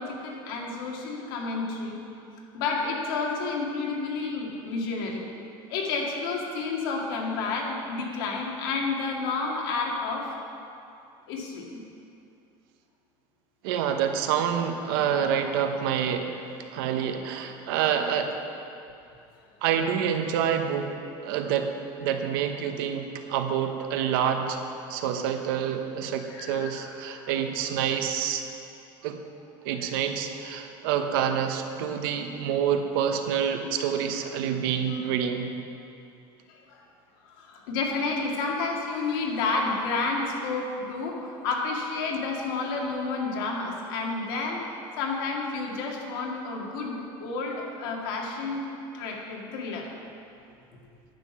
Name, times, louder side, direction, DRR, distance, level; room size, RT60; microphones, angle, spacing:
voice 1, 0.0-2.0 2.5-5.2 5.7-10.3 11.3-11.8 24.8-25.0 26.3-27.3 34.9-35.0 36.5-36.8 37.2-48.6 48.9-49.9, left 3 dB, 90° left, -1 dB, 2.0 m, -30 dB
voice 2, 13.6-16.4 16.7-18.3 19.6-20.9 21.2-21.7 22.0-24.6 24.9-28.4 29.0-29.2 29.6-35.5, right 8 dB, 85° right, 6 dB, 1.0 m, -27 dB
10.5 x 7.6 x 6.1 m, 2.6 s
cardioid pair, 165°, 12 cm